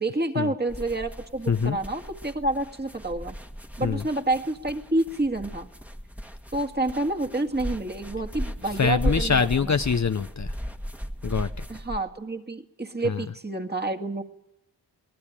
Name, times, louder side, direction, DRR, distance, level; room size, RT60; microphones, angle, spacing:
voice 1, 0.0-3.4 3.8-5.7 6.5-9.7 11.7-14.2, right 2 dB, 20° right, 3 dB, 1.9 m, -28 dB
sound 1, 0.7-12.0, equal, 5° right, 1.5 m, -36 dB
voice 2, 1.5-1.8 3.8-4.1 8.6-10.5 11.2-11.7 13.0-13.2, left 5 dB, 40° left, 10 dB, 0.7 m, -24 dB
22.5 x 18.5 x 8.8 m, 0.87 s
cardioid pair, 55°, 45 cm